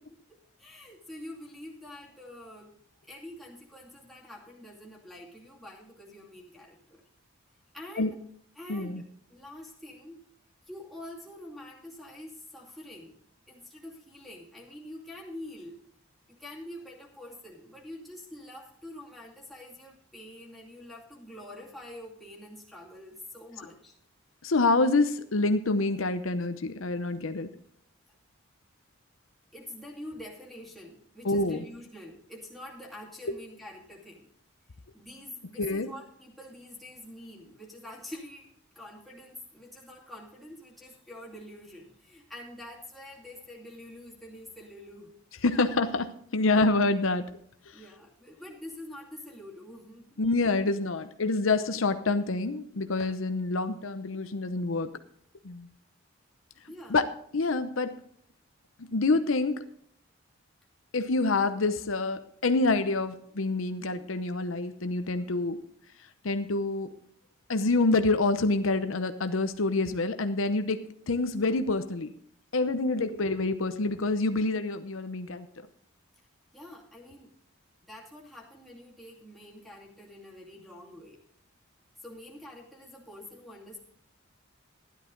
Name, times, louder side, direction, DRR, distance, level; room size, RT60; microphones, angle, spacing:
voice 1, 0.6-2.7 3.1-7.0 7.7-8.2 8.5-9.0 9.3-10.2 10.7-13.2 13.5-15.7 16.3-23.9 29.5-34.3 34.9-45.1 47.7-50.2 56.7-57.0 76.5-77.3 77.9-81.2 82.0-83.8, left 1 dB, ahead, -4 dB, 2.6 m, -46 dB
voice 2, 8.7-9.0 24.4-27.5 31.2-31.6 35.6-35.9 45.4-47.2 47.7-47.8 50.2-54.9 55.4-55.7 56.9-57.1 57.3-58.0 58.8-59.7 60.9-65.6 66.2-66.9 67.5-70.8 71.1-72.1 72.5-75.5, left 3 dB, 75° left, 9 dB, 0.8 m, -27 dB
13.0 x 11.0 x 3.8 m, 0.65 s
head